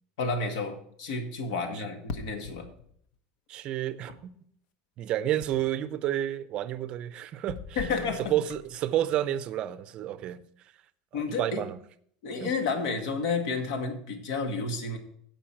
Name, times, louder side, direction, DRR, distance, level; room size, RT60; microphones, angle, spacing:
voice 1, 0.2-2.7 7.8-8.4 11.1-11.6 12.2-15.0, left 4 dB, 75° left, 2.0 m, -31 dB
sound 1, 2.1-3.1 5.4-6.0 7.5-8.8, left 5 dB, 55° left, 1.0 m, -42 dB
voice 2, 3.5-4.3 5.0-7.8 8.3-10.4 11.1-11.8 12.4-12.5, right 12 dB, 35° right, 0.6 m, -30 dB
16.0 x 5.5 x 4.5 m
cardioid pair, 175°, 3 cm